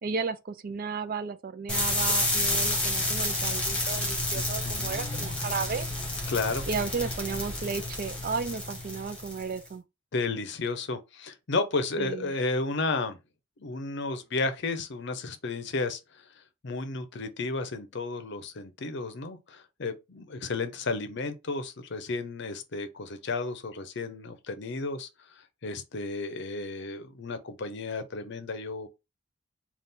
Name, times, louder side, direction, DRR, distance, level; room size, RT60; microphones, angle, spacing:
voice 1, 0.0-5.9 6.7-9.8 12.0-12.3, right 5 dB, 45° right, 0.4 m, -34 dB
sound 1, 1.7-9.6, left 1 dB, 5° left, 1.3 m, -30 dB
voice 2, 4.3-5.3 6.3-6.6 10.1-13.2 13.6-16.2 16.6-25.1 25.4-28.9, left 3 dB, 60° left, 0.6 m, -33 dB
4.1 x 2.4 x 3.6 m
head